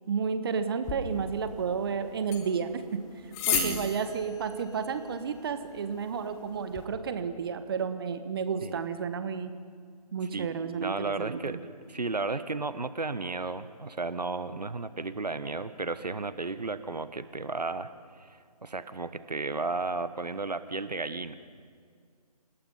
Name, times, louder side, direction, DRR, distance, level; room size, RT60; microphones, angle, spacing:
voice 1, 0.1-3.0 3.5-9.5 10.1-11.6, right 6 dB, 35° right, 10 dB, 1.3 m, -32 dB
sound 1, 0.8-6.8, left 8 dB, 15° left, 1.8 m, -37 dB
voice 2, 3.5-3.9 8.6-8.8 10.3-21.3, right 3 dB, 80° right, 13 dB, 1.2 m, -34 dB
28.5 x 18.5 x 5.6 m, 2.1 s
figure-of-eight pair, 150°, 21 cm